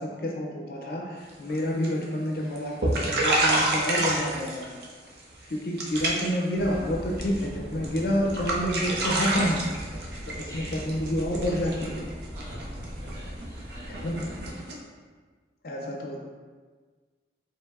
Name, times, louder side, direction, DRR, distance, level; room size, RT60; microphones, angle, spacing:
voice 1, 0.0-4.8 5.5-9.7 10.3-12.0 13.9-14.2 15.6-16.2, equal, 55° left, -1 dB, 0.5 m, -29 dB
sound 1, 1.3-1.6 1.8-2.3 2.6-2.7 2.8-4.9 5.2-5.5 5.8-6.4 6.7-7.5 7.8-8.0 8.3-14.7, right 2 dB, 70° right, 0.6 m, -28 dB
sound 2, 6.5-14.5, equal, 85° right, 1.2 m, -39 dB
voice 2, 10.3-10.9 12.3-12.6 12.9-14.9, equal, 20° right, -10 dB, 1.3 m, -49 dB
4.4 x 3.1 x 2.4 m, 1.5 s
head